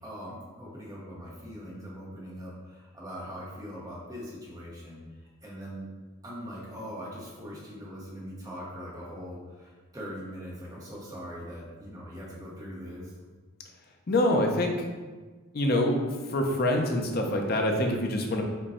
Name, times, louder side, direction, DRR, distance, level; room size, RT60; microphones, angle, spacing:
voice 1, 0.0-5.0 5.4-5.9 6.2-13.1, equal, 15° right, -5 dB, 0.9 m, -41 dB
voice 2, 14.1-14.9 15.5-18.4, left 1 dB, 45° left, 2 dB, 0.5 m, -25 dB
5.1 x 2.2 x 4.2 m, 1.4 s
head